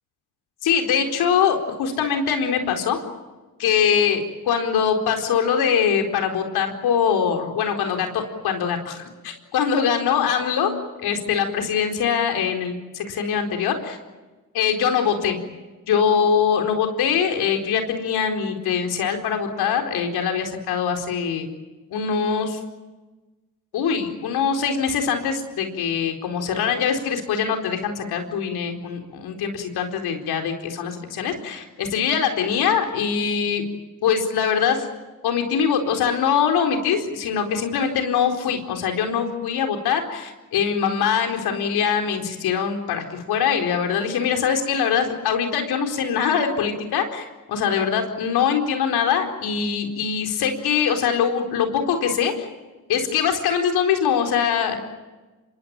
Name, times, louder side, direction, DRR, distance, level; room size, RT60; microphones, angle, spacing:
voice 1, 0.6-3.0 3.6-10.7 11.0-14.0 14.5-15.4 15.9-21.5 21.9-22.6 23.7-33.6 34.0-34.9 35.2-52.5 52.9-54.9, left 7 dB, 80° left, 4 dB, 4.4 m, -23 dB
26.5 x 23.0 x 8.9 m, 1.2 s
supercardioid pair, 70°, 38 cm